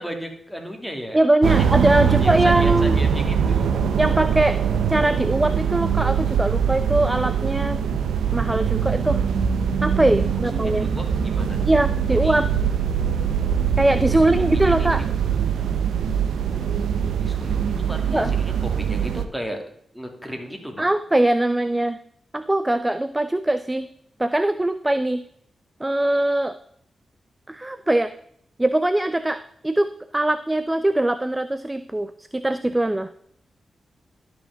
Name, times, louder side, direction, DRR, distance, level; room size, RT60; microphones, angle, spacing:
voice 1, 0.0-1.2 1.5-1.8 2.1-3.7 10.3-11.7 12.2-12.4 14.5-15.1 16.5-16.6 17.2-19.6 19.9-20.9, equal, 5° right, 3 dB, 2.5 m, -35 dB
voice 2, 1.1-3.0 4.0-4.6 4.9-7.8 8.3-9.3 9.8-10.9 11.7-12.5 13.8-15.0 18.1-18.3 20.8-22.0 22.3-23.9 24.2-25.2 25.8-26.5 27.5-28.1 28.6-33.1, right 1 dB, 20° right, 13 dB, 0.5 m, -21 dB
sound 1, 1.4-19.2, right 7 dB, 80° right, 0.6 m, -22 dB
12.0 x 6.1 x 3.6 m, 0.67 s
supercardioid pair, 40°, 0 cm